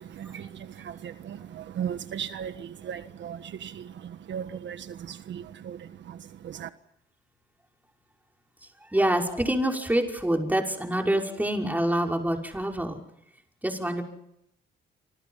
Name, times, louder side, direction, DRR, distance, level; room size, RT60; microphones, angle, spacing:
voice 1, 1.0-2.5 2.9-3.7 4.3-4.8 5.3-5.8 6.6-6.7, right 8 dB, 65° right, 1.5 m, -35 dB
voice 2, 8.8-13.0 13.6-14.0, right 1 dB, 10° right, 5.7 m, -26 dB
30.0 x 26.5 x 5.7 m
cardioid pair, 90°, 20 cm